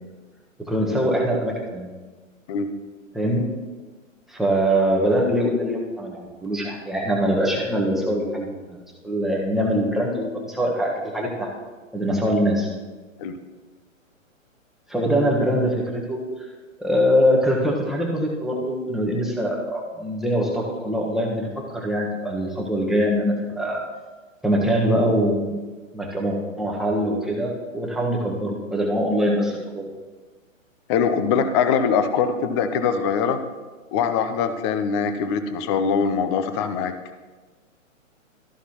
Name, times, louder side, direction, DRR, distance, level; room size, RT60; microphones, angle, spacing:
voice 1, 0.7-1.9 3.1-3.5 4.3-8.8 9.0-11.5 11.9-12.7 14.9-16.2 16.8-23.8 24.4-25.6 25.9-29.9, equal, ahead, -3 dB, 1.4 m, -23 dB
voice 2, 30.9-33.4 33.9-36.9, left 6 dB, 20° left, 10 dB, 0.6 m, -22 dB
13.5 x 11.0 x 3.0 m, 1.3 s
hypercardioid pair, 130°, 40 cm